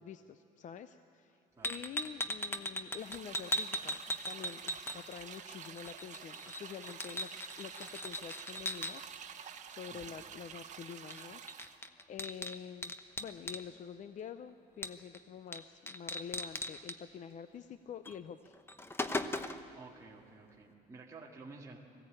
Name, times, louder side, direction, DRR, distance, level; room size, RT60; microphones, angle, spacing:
voice 1, 0.0-4.0 4.3-18.5, left 8 dB, 45° left, 11 dB, 0.6 m, -47 dB
sound 1, 1.6-5.4 5.6-8.9 11.1-11.2 11.5-13.6 14.8-15.2 15.5-15.6 15.9-17.0 18.0-18.2 18.5-19.7, left 1 dB, 15° left, 0.9 m, -38 dB
sound 2, 3.0-11.8, right 7 dB, 45° right, 1.3 m, -49 dB
voice 2, 19.7-21.8, right 3 dB, 20° right, -4 dB, 2.1 m, -52 dB
20.5 x 16.0 x 8.8 m, 2.8 s
cardioid pair, 110°, 17 cm